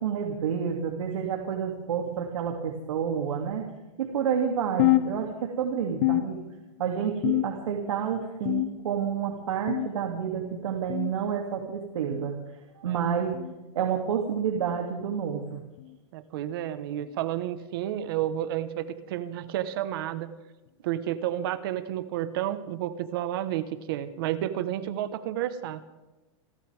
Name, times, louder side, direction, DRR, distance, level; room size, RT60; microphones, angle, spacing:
voice 1, 0.0-3.6 4.0-6.4 6.8-12.4 12.8-13.4 13.7-15.6, right 7 dB, 80° right, 1 dB, 2.9 m, -29 dB
sound 1, 4.8-5.6 6.0-6.8 7.2-7.8 8.5-9.1 9.7-10.1 10.9-11.1 12.1-12.3 13.3-13.5 14.6-14.7 15.8-16.0 17.0-17.2 18.2-18.3 19.4-19.5, left 17 dB, 35° left, 0.5 m, -28 dB
voice 2, 16.1-20.3 20.8-25.8, right 12 dB, 45° right, 12 dB, 1.4 m, -31 dB
30.0 x 12.5 x 3.7 m, 1.1 s
supercardioid pair, 170°, 16 cm